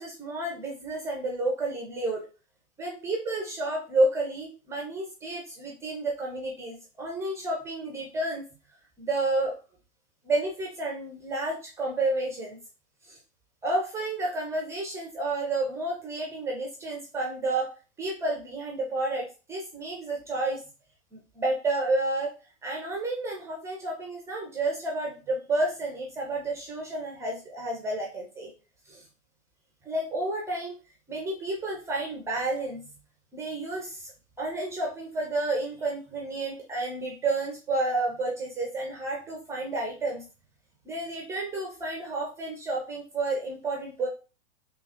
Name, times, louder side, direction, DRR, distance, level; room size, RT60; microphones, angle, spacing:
voice 1, 0.0-2.2 2.8-8.5 9.0-9.5 10.2-12.6 13.0-13.2 13.6-17.7 18.0-20.6 21.1-22.3 22.6-28.5 28.9-29.0 29.9-30.8 31.1-32.9 33.3-34.1 34.4-40.2 40.9-44.1, right 2 dB, 10° right, 0 dB, 0.4 m, -30 dB
3.7 x 2.8 x 3.4 m, 0.33 s
hypercardioid pair, 135°, 37 cm